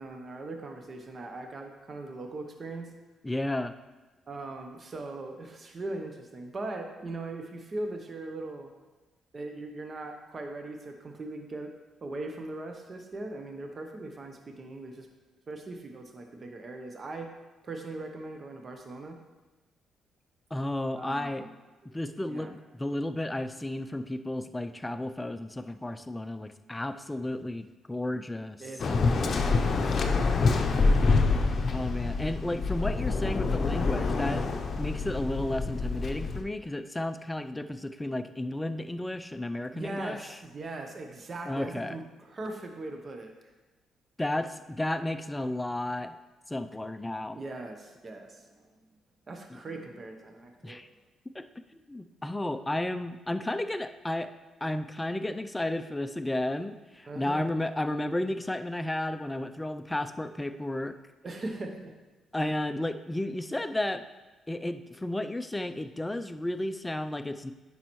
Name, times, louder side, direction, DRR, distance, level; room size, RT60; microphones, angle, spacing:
voice 1, 0.0-2.9 4.3-8.7 9.3-11.7 12.0-15.1 15.5-17.3 17.6-19.2 21.0-21.5 21.8-22.0 22.2-22.5 28.6-31.2 39.7-43.3 47.3-48.7 49.3-50.8 57.1-57.5 61.2-61.9 62.5-62.6, right 2 dB, 40° right, 4 dB, 0.8 m, -40 dB
voice 2, 3.2-3.7 20.5-21.4 21.9-28.6 31.7-34.4 34.8-40.2 41.5-42.0 44.2-46.2 46.5-47.4 49.5-49.6 50.6-50.9 51.3-51.4 51.7-54.3 54.6-60.9 62.3-64.1 64.5-67.5, left 1 dB, 10° left, 9 dB, 0.4 m, -33 dB
Waves surf, 28.8-36.4, left 4 dB, 45° left, 0.7 m, -26 dB
9.3 x 5.5 x 3.1 m, 1.2 s
cardioid pair, 90°, 0 cm